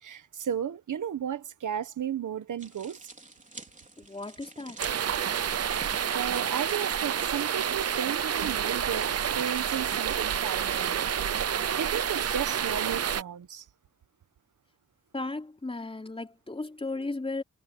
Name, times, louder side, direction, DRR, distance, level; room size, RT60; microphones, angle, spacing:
voice 1, 0.0-3.0 6.1-11.1 11.7-13.6, right 9 dB, 75° right, 1.4 m, -34 dB
sound 1, 2.6-7.7, right 3 dB, 25° right, 3.7 m, -48 dB
voice 2, 4.0-4.8 15.1-17.4, left 2 dB, 20° left, 4.0 m, -35 dB
sound 2, 4.8-13.2, right 8 dB, 55° right, 0.8 m, -29 dB
wide cardioid pair, 115°, 31 cm